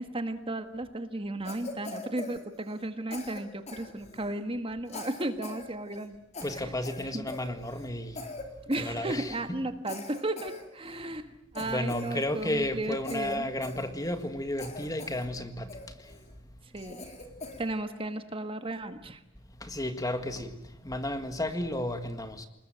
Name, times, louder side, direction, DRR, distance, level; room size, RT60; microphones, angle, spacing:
voice 1, 0.0-6.2 6.5-6.7 7.1-7.3 8.7-13.5 16.7-17.1 17.6-19.2, right 1 dB, 25° right, 1.6 m, -34 dB
Cough, 1.4-2.9 3.1-4.4 4.9-5.7 5.9-6.1 6.3-7.9 8.1-8.5 8.7-9.4 9.9-11.1 11.5-12.6 13.0-14.3 14.6-15.3 15.7-16.2 16.8-17.7, left 2 dB, 30° left, 4.0 m, -43 dB
voice 2, 6.4-8.2 8.8-9.6 11.6-15.7 16.0-16.1 19.6-20.6 20.8-22.4, left 1 dB, 15° left, 1.8 m, -33 dB
28.5 x 20.5 x 9.1 m
head